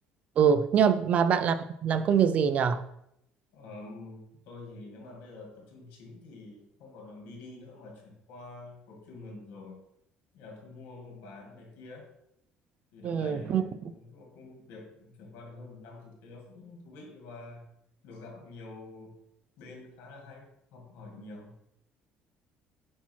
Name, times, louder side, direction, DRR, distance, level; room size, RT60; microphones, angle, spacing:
voice 1, 0.4-2.8 13.0-13.6, right 7 dB, 45° right, 11 dB, 0.4 m, -24 dB
voice 2, 3.5-9.8 10.3-12.1 12.9-17.6 18.0-19.2 19.6-21.5, left 2 dB, 85° left, 1 dB, 2.1 m, -47 dB
8.5 x 2.8 x 4.5 m, 0.76 s
cardioid pair, 140°, 3 cm